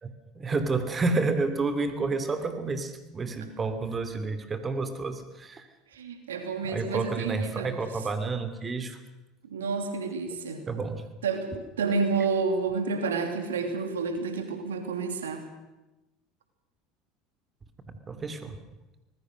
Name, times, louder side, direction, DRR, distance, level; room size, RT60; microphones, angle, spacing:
voice 1, 0.0-5.7 6.6-9.0 10.7-11.0 18.1-18.6, right 3 dB, 25° right, 9 dB, 2.9 m, -30 dB
voice 2, 5.9-7.7 9.4-10.6 11.2-15.4, right 4 dB, 85° right, 6 dB, 2.8 m, -30 dB
25.0 x 20.0 x 6.5 m, 1.0 s
hypercardioid pair, 75°, 0 cm